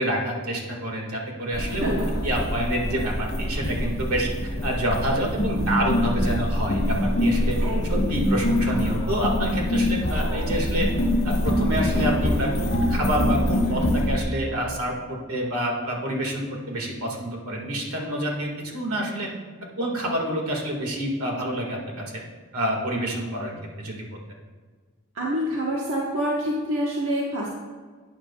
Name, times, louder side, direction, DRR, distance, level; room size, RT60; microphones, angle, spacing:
voice 1, 0.0-2.0 2.2-7.6 7.9-10.9 11.2-19.3 19.8-22.2 22.5-23.5 23.8-24.0, right 1 dB, 80° right, 0 dB, 1.9 m, -27 dB
sound 1, 1.5-14.2, left 1 dB, 50° left, 1.5 m, -24 dB
voice 2, 7.6-8.1 25.1-27.5, equal, 65° right, -4 dB, 1.2 m, -27 dB
12.0 x 9.0 x 2.4 m, 1.5 s
head